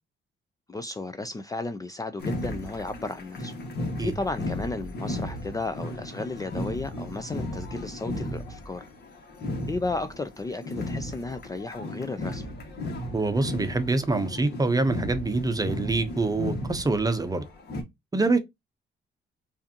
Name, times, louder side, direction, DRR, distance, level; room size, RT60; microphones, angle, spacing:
voice 1, 0.7-3.5 4.0-8.9 9.7-12.5, left 3 dB, 20° left, 0.4 m, -33 dB
sound 1, 2.2-17.8, left 1 dB, 55° left, 1.5 m, -35 dB
voice 2, 13.1-17.4 18.1-18.4, right 3 dB, 20° right, 0.7 m, -25 dB
4.8 x 2.6 x 2.8 m
cardioid pair, 90°, 20 cm